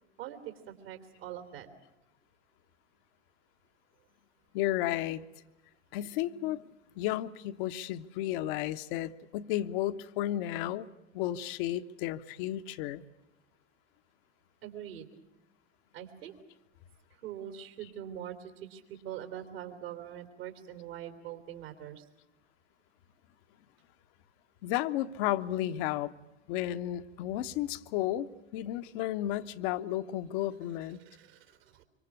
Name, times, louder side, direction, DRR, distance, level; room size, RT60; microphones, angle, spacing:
voice 1, 0.2-1.7 14.6-15.1 15.9-16.3 17.2-22.0 31.0-31.8, right 10 dB, 60° right, 7 dB, 3.3 m, -43 dB
voice 2, 4.5-5.2 5.9-6.6 6.9-13.0 17.8-17.9 24.6-26.1 26.5-31.0, left 13 dB, 50° left, 10 dB, 1.2 m, -33 dB
25.0 x 25.0 x 8.4 m, 0.93 s
figure-of-eight pair, 80°, 34 cm